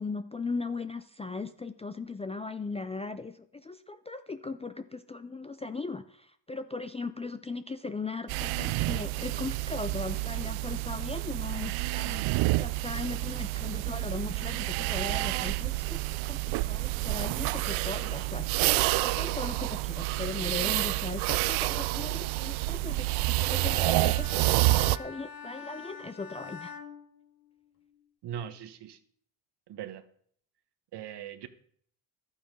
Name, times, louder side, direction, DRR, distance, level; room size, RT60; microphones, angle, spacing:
voice 1, 0.0-26.7, left 3 dB, 15° left, 10 dB, 0.4 m, -38 dB
sound 1, 8.3-25.0, right 21 dB, 85° right, 0.6 m, -29 dB
Bowed string instrument, 23.3-27.8, left 6 dB, 50° left, 1.3 m, -45 dB
voice 2, 28.2-29.0 29.7-30.0 30.9-31.5, right 10 dB, 60° right, 10 dB, 1.3 m, -40 dB
12.0 x 8.7 x 5.3 m, 0.62 s
cardioid pair, 110°, 47 cm